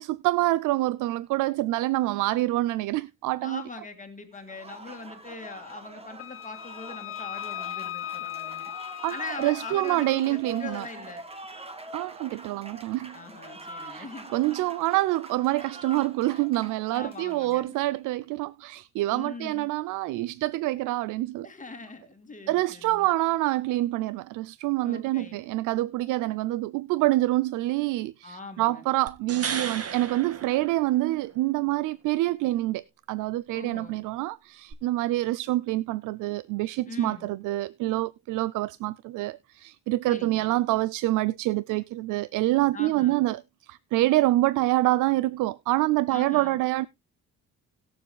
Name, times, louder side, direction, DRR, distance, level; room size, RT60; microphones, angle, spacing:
voice 1, 0.0-3.6 9.0-9.1 9.4-10.9 11.9-13.2 13.8-14.1 14.3-21.5 22.5-46.9, right 17 dB, 90° right, 0.5 m, -26 dB
voice 2, 3.4-8.7 9.1-11.2 13.1-14.3 16.9-17.7 19.1-19.7 21.4-23.1 24.8-25.4 28.2-28.8 33.5-34.0 36.9-37.3 40.1-40.6 42.7-43.2 46.1-46.6, left 3 dB, 25° left, 2.1 m, -41 dB
Applause, 4.3-18.0, right 2 dB, 20° right, 1.7 m, -44 dB
Wind instrument woodwind instrument, 6.2-10.2, left 13 dB, 45° left, 0.4 m, -38 dB
sound 1, 29.1-31.3 34.7-34.8, right 6 dB, 50° right, 1.7 m, -35 dB
20.5 x 7.2 x 2.2 m
cardioid pair, 90°, 30 cm